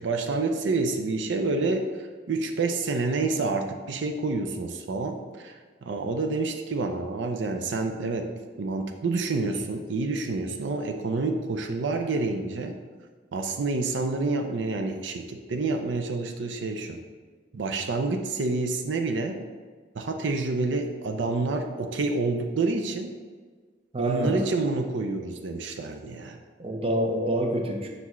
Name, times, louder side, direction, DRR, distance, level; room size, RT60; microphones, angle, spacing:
voice 1, 0.0-1.9 2.3-5.5 5.8-8.3 8.6-12.7 13.3-17.0 17.5-19.4 19.9-23.1 24.0-26.4, right 3 dB, 90° right, 5 dB, 0.5 m, -28 dB
voice 2, 23.9-24.5 26.6-27.9, right 1 dB, 30° right, 2 dB, 0.7 m, -27 dB
5.8 x 5.4 x 3.1 m, 1.5 s
head